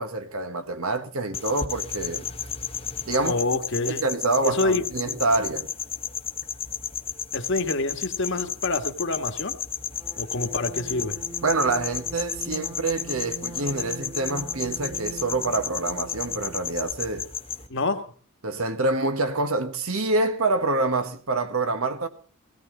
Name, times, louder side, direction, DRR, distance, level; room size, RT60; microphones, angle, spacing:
voice 1, 0.0-2.2 3.1-3.4 3.9-5.7 11.4-17.3 18.4-22.1, right 2 dB, 70° right, 1.4 m, -26 dB
sound 1, 1.3-17.7, left 8 dB, 25° left, 1.2 m, -33 dB
voice 2, 3.2-4.0 4.4-4.8 7.3-9.6 10.2-11.2 17.7-18.0, left 2 dB, 55° left, 1.6 m, -27 dB
sound 2, 9.9-16.8, right 3 dB, 20° right, 1.6 m, -42 dB
17.0 x 17.0 x 3.9 m
head